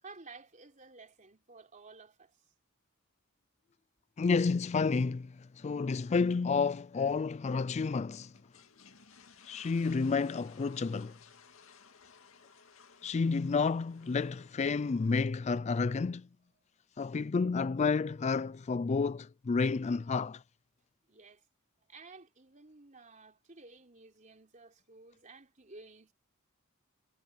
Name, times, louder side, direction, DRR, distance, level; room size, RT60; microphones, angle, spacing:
voice 1, 0.0-2.5 16.6-16.7 21.1-21.4 21.9-26.1, right 3 dB, 35° right, 3.9 m, -54 dB
voice 2, 4.2-8.3 9.5-11.2 13.0-16.3 17.0-20.4, left 4 dB, 30° left, 0.3 m, -30 dB
sound 1, 8.2-15.3, left 6 dB, 75° left, 2.2 m, -58 dB
head